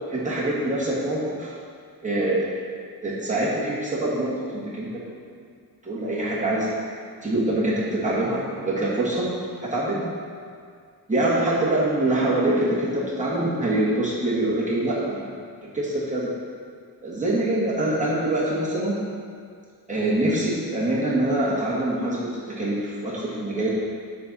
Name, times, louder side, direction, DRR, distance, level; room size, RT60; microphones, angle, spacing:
voice 1, 0.1-1.5 2.0-2.5 3.0-4.9 5.8-6.9 7.2-9.3 9.6-10.0 11.1-15.3 15.7-16.3 17.0-19.0 19.9-22.3 22.6-23.7, right 1 dB, 20° right, -8 dB, 1.7 m, -24 dB
7.5 x 4.3 x 5.4 m, 2.2 s
wide cardioid pair, 115°, 38 cm